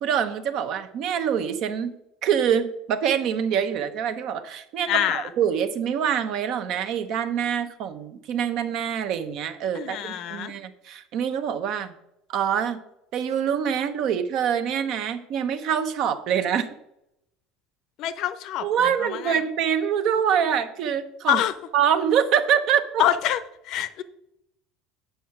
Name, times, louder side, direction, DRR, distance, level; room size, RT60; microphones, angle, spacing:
voice 1, 0.0-11.9 12.3-12.8 13.1-16.7 18.6-21.4 21.7-23.0, right 8 dB, 55° right, 10 dB, 0.8 m, -25 dB
voice 2, 4.9-5.3 9.7-10.5 18.0-19.4 21.3-21.5 23.0-24.0, left 11 dB, 55° left, 13 dB, 0.6 m, -26 dB
8.1 x 5.6 x 5.9 m, 0.81 s
cardioid pair, 140°, 0 cm